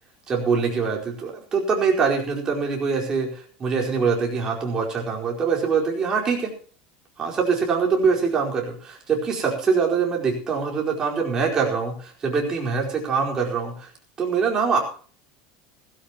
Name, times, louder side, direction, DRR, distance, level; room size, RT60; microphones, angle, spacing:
voice 1, 0.3-6.5 7.2-13.9 14.2-14.8, right 5 dB, 20° right, 0 dB, 4.6 m, -23 dB
17.5 x 15.5 x 3.0 m, 0.43 s
supercardioid pair, 155°, 3 cm